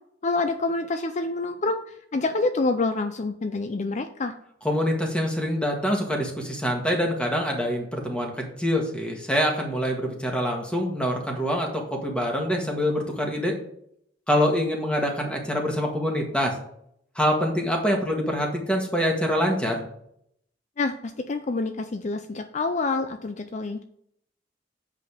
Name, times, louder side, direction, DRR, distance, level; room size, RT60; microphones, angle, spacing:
voice 1, 0.2-4.4 20.8-23.8, left 3 dB, 40° left, 8 dB, 0.4 m, -27 dB
voice 2, 4.6-13.5 14.3-16.5 17.1-19.8, equal, 5° left, 1 dB, 1.6 m, -25 dB
7.9 x 5.2 x 5.1 m, 0.71 s
head